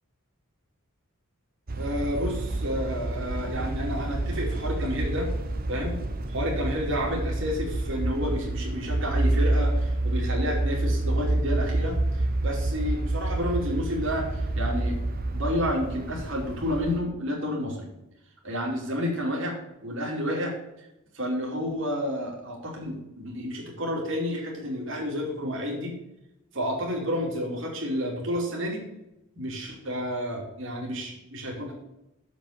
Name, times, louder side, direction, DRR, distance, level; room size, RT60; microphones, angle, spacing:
sound 1, 1.7-17.0, right 2 dB, 40° right, 0.8 m, -28 dB
voice 1, 1.8-5.3 5.7-15.0 15.3-17.9 18.4-19.6 19.8-20.5 21.1-26.0 26.5-28.8 29.4-31.7, equal, 60° right, -2 dB, 2.8 m, -30 dB
7.4 x 5.3 x 6.5 m, 0.88 s
head